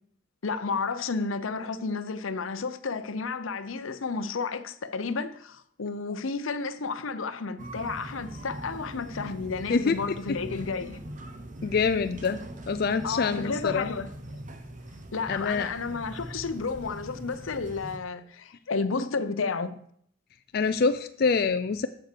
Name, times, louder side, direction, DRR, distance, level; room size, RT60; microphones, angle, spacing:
voice 1, 0.4-11.0 13.0-14.1 15.1-19.8, left 4 dB, 85° left, 0.7 m, -32 dB
sound 1, 7.6-18.0, right 1 dB, 40° right, 1.0 m, -41 dB
voice 2, 9.7-10.2 11.6-12.4 12.7-13.9 15.3-15.7 20.5-21.9, left 5 dB, 50° left, 0.4 m, -25 dB
8.0 x 7.0 x 6.7 m
head